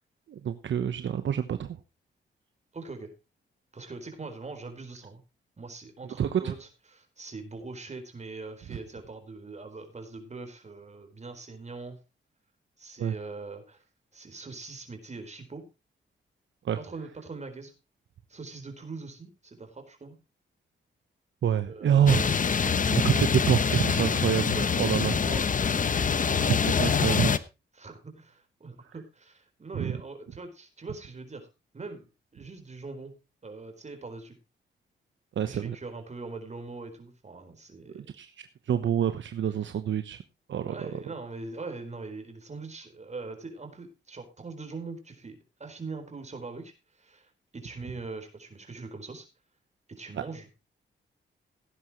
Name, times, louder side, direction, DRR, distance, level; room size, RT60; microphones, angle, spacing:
voice 1, 0.3-1.8 6.2-6.5 13.0-13.1 16.6-16.8 21.4-22.2 22.6-25.1 26.3-27.3 29.7-30.0 35.4-35.8 37.9-40.2 40.5-41.0, right 9 dB, 70° right, 10 dB, 1.0 m, -27 dB
voice 2, 2.7-3.1 3.7-5.2 5.6-12.0 12.8-13.8 14.1-15.6 16.8-17.7 18.3-20.2 21.7-22.3 24.5-25.6 27.8-31.5 31.7-33.1 33.4-34.3 35.4-38.1 40.7-49.3 49.9-50.5, right 3 dB, 35° right, 6 dB, 4.4 m, -42 dB
sound 1, 22.1-27.4, left 6 dB, 40° left, 0.9 m, -25 dB
17.5 x 9.8 x 3.0 m, 0.28 s
cardioid pair, 90°, 20 cm